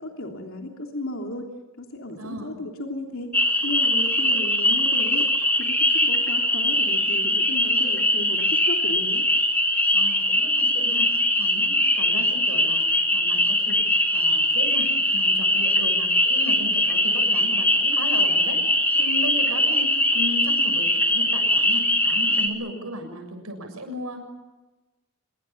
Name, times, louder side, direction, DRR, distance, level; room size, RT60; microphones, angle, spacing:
voice 1, 0.0-1.5 1.8-3.3 3.6-5.3 5.6-9.2, left 1 dB, 65° left, 2 dB, 3.2 m, -34 dB
voice 2, 2.2-2.5 9.9-11.1 11.4-24.2, right 1 dB, 85° right, 5 dB, 7.2 m, -36 dB
sound 1, 3.3-22.5, left 1 dB, 10° left, 2.8 m, -21 dB
26.5 x 22.5 x 7.2 m, 1.1 s
head